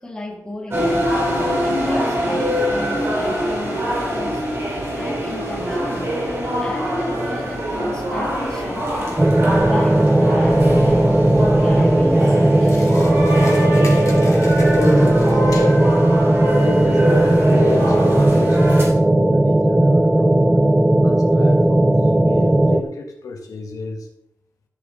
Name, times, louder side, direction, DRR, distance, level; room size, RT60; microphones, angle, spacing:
voice 1, 0.0-4.4 4.9-6.2 6.6-9.2 9.6-13.4, left 1 dB, 10° left, -1 dB, 1.9 m, -33 dB
sound 1, 0.7-18.8, equal, 45° right, 3.7 m, -24 dB
sound 2, 9.2-22.8, right 1 dB, 10° right, 0.6 m, -16 dB
sound 3, 12.6-15.5, left 3 dB, 60° left, 2.2 m, -39 dB
voice 2, 14.3-15.8 16.5-20.7 21.0-24.1, left 3 dB, 90° left, 2 dB, 1.6 m, -30 dB
13.0 x 6.8 x 3.9 m, 0.75 s
wide cardioid pair, 145°, 6 cm